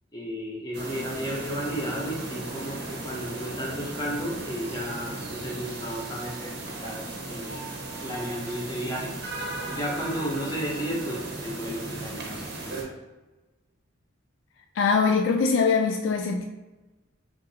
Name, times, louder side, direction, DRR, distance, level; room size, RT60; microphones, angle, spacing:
voice 1, 0.1-7.7 8.0-9.2 9.7-12.9, equal, 20° left, -2 dB, 0.8 m, -33 dB
sound 1, 0.7-12.8, right 2 dB, 55° right, 0.8 m, -36 dB
voice 2, 14.7-16.5, left 5 dB, 65° left, 3 dB, 0.3 m, -22 dB
3.7 x 2.6 x 4.1 m, 1.1 s
head